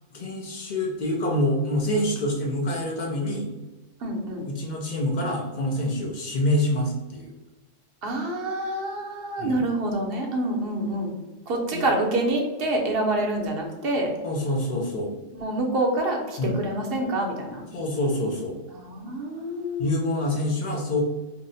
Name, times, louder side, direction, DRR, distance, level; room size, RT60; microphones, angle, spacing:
voice 1, 0.1-3.5 4.5-7.3 9.4-9.6 11.7-11.9 14.2-15.1 16.4-16.6 17.7-18.6 19.8-21.0, left 1 dB, 50° left, 0 dB, 0.5 m, -26 dB
voice 2, 4.0-4.5 8.0-11.1 11.5-14.1 15.3-17.7 18.7-20.3, right 1 dB, 55° right, 0 dB, 0.8 m, -27 dB
2.7 x 2.1 x 3.8 m, 1.1 s
omnidirectional pair, 1.3 m